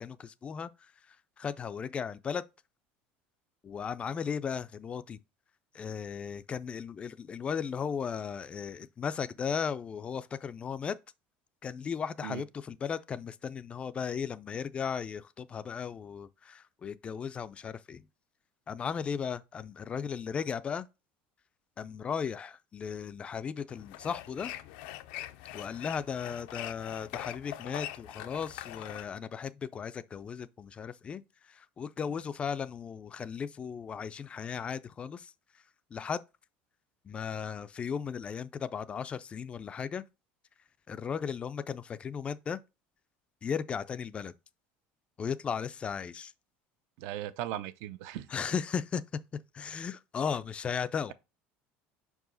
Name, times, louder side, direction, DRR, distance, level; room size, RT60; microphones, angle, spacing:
voice 1, 0.0-2.4 3.6-5.2 5.7-11.0 11.6-18.0 18.7-20.9 21.8-24.5 25.5-35.3 35.9-36.2 37.0-40.0 40.9-42.6 43.4-44.3 45.2-46.3 48.3-49.0 49.5-51.1, left 7 dB, 25° left, 0.3 m, -36 dB
sound 1, 23.7-29.1, left 14 dB, 80° left, 0.5 m, -43 dB
voice 2, 47.0-48.3, right 12 dB, 70° right, 0.6 m, -37 dB
5.5 x 4.8 x 3.9 m
cardioid pair, 145°, 5 cm